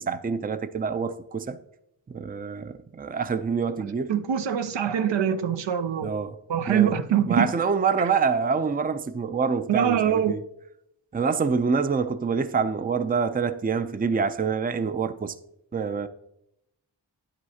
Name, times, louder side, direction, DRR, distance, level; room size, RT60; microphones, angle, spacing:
voice 1, 0.0-1.6 2.1-4.1 6.0-6.4 6.7-6.9 7.3-10.4 11.1-15.3 15.7-16.1, right 5 dB, 20° right, 0.5 m, -26 dB
voice 2, 3.8-6.1 6.5-7.5 9.7-10.4, right 9 dB, 70° right, 0.6 m, -24 dB
9.8 x 7.9 x 2.8 m
cardioid pair, 40°, 45 cm